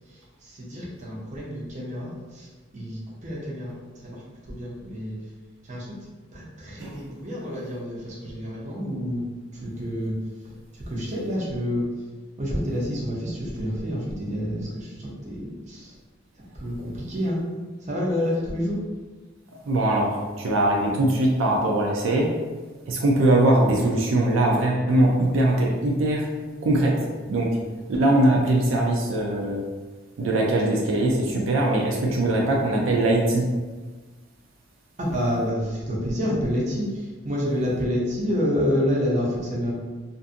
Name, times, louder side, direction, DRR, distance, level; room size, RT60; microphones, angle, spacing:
voice 1, 0.4-2.5 2.7-3.7 4.0-4.2 4.5-5.1 5.7-5.9 6.3-9.2 9.5-10.1 10.7-11.8 12.4-15.9 16.6-17.4 17.9-18.8 35.0-39.7, equal, 40° right, -4 dB, 0.6 m, -28 dB
voice 2, 19.7-22.3 22.9-26.3 26.6-27.5 27.9-29.6 30.2-33.4, right 1 dB, 80° right, -1 dB, 0.4 m, -21 dB
2.5 x 2.5 x 2.4 m, 1.3 s
head